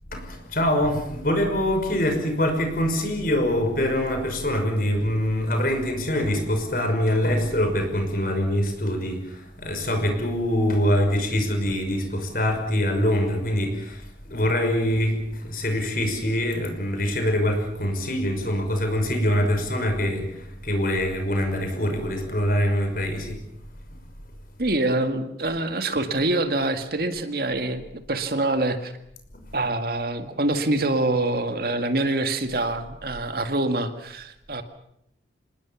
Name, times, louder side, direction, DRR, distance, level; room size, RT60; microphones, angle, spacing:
voice 1, 0.1-23.4, equal, 50° left, 5 dB, 5.9 m, -24 dB
voice 2, 24.6-28.9 29.5-34.6, right 2 dB, 55° right, 8 dB, 1.9 m, -25 dB
27.0 x 20.0 x 7.2 m, 0.77 s
head